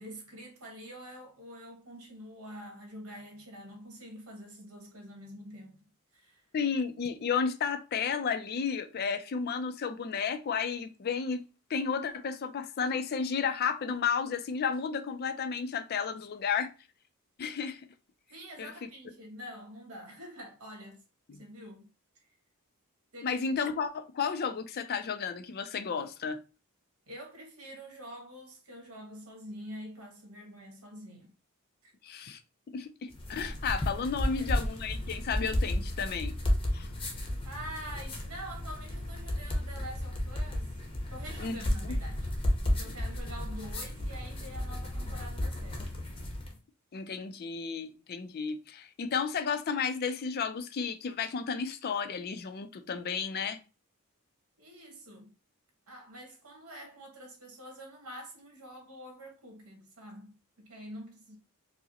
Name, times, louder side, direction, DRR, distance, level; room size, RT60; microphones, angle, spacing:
voice 1, 0.0-5.8 6.1-6.4 18.3-21.0 21.4-21.9 23.1-23.3 27.1-31.3 31.8-31.9 34.2-34.5 37.4-40.7 41.1-42.3 42.6-45.9 54.6-55.3 55.9-61.4, equal, 70° right, 1.4 m, -46 dB
voice 2, 6.5-16.7 17.4-17.8 18.6-18.7 21.3-21.4 23.2-26.4 32.0-32.4 32.7-36.3 36.7-36.9 41.4-41.9 46.9-53.6, left 6 dB, 45° left, 0.4 m, -32 dB
sound 1, 33.1-46.6, left 1 dB, 25° left, 0.7 m, -33 dB
4.6 x 2.0 x 2.8 m
head